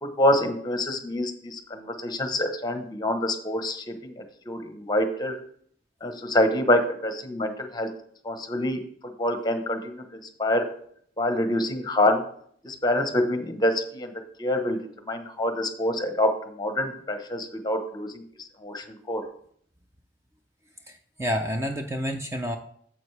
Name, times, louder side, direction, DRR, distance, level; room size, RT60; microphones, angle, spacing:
voice 1, 0.0-5.4 6.0-7.9 8.2-8.8 9.2-10.7 11.2-12.2 12.6-14.1 14.4-18.2 18.6-19.2, left 1 dB, 25° left, 7 dB, 0.9 m, -26 dB
voice 2, 20.9-22.6, equal, 15° right, 4 dB, 0.5 m, -29 dB
9.3 x 7.3 x 3.3 m, 0.63 s
head